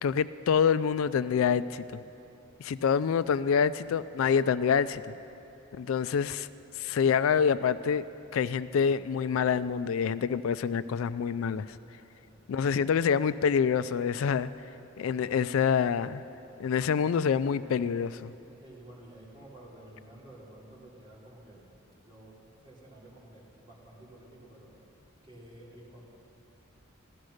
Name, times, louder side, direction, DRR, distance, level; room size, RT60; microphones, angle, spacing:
voice 1, 0.0-2.0 2.6-5.0 5.7-6.5 6.8-8.0 8.3-11.8 12.5-14.5 15.0-16.2 16.6-18.3, left 7 dB, 75° left, 15 dB, 0.3 m, -26 dB
voice 2, 12.3-12.8 18.5-21.7 22.0-22.4 22.6-24.7 25.2-26.0, right 1 dB, 25° right, -5 dB, 3.1 m, -52 dB
15.5 x 12.0 x 6.4 m, 3.0 s
head